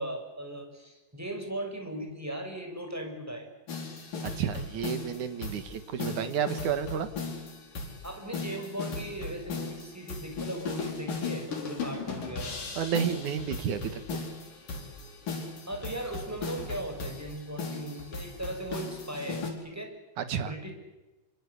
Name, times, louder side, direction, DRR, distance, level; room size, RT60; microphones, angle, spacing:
voice 1, 0.0-3.5 8.0-12.6 15.7-19.9 20.3-20.7, right 1 dB, 5° right, 4 dB, 5.9 m, -38 dB
sound 1, 3.7-19.5, left 4 dB, 50° left, 6.0 m, -37 dB
voice 2, 4.2-7.1 12.8-14.2 20.2-20.5, right 8 dB, 55° right, 10 dB, 2.4 m, -31 dB
27.5 x 25.0 x 8.5 m, 1.1 s
omnidirectional pair, 5.1 m